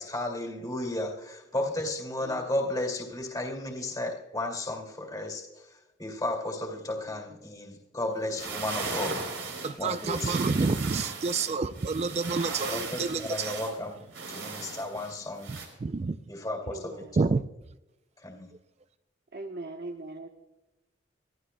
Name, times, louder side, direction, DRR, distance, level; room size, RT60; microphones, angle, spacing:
voice 1, 0.0-9.2 9.8-10.3 12.7-14.0 14.3-15.5 16.3-17.0 18.2-18.5, left 1 dB, 20° left, 1 dB, 2.4 m, -34 dB
sound 1, 8.2-15.7, right 4 dB, 75° right, 3.6 m, -37 dB
voice 2, 9.6-13.7 15.5-16.2 17.2-17.4, right 4 dB, 35° right, 12 dB, 0.4 m, -29 dB
voice 3, 16.6-17.0 19.3-20.3, right 2 dB, 55° right, 3 dB, 1.0 m, -40 dB
24.5 x 14.0 x 2.2 m, 0.99 s
head